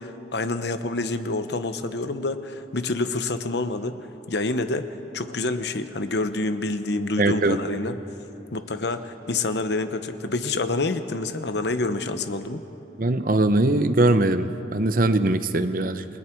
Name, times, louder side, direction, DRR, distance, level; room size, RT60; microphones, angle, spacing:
voice 1, 0.0-4.0 4.3-8.0 8.5-12.6, left 2 dB, 65° left, 9 dB, 1.0 m, -27 dB
voice 2, 7.2-7.8 13.0-16.1, right 2 dB, 50° right, 11 dB, 0.8 m, -21 dB
28.5 x 20.5 x 4.6 m, 3.0 s
head